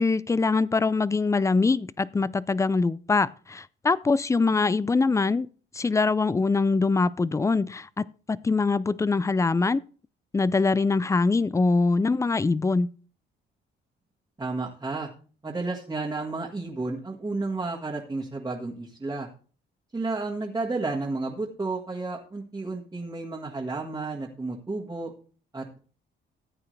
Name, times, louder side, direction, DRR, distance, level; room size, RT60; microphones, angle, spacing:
voice 1, 0.0-5.5 5.7-9.8 10.3-12.9, left 3 dB, 15° left, 0.4 m, -23 dB
voice 2, 14.4-15.1 15.4-19.3 19.9-25.1 25.5-25.8, right 3 dB, 20° right, 1.7 m, -32 dB
14.5 x 8.7 x 3.3 m
cardioid pair, 90°, 20 cm